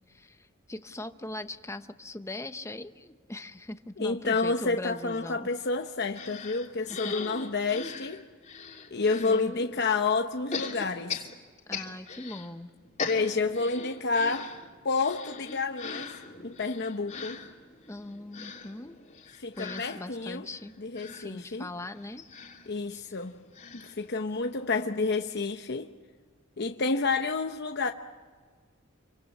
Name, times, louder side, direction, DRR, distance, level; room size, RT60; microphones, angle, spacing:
voice 1, 0.1-5.5 6.9-7.1 9.2-9.7 11.7-12.7 17.9-19.0 19.6-20.8 21.1-22.3 22.9-23.1, left 1 dB, 15° left, 0.9 m, -40 dB
voice 2, 4.0-8.2 8.9-11.3 13.1-14.5 14.8-16.1 16.4-17.4 19.4-20.5 20.8-21.7 22.7-23.4 23.7-25.9 26.6-27.9, left 4 dB, 55° left, 0.9 m, -29 dB
sound 1, 6.1-9.4 10.5-12.5 12.8-24.7 25.1-25.2 25.4-25.5, left 5 dB, 35° left, 3.0 m, -40 dB
28.0 x 25.0 x 7.3 m
head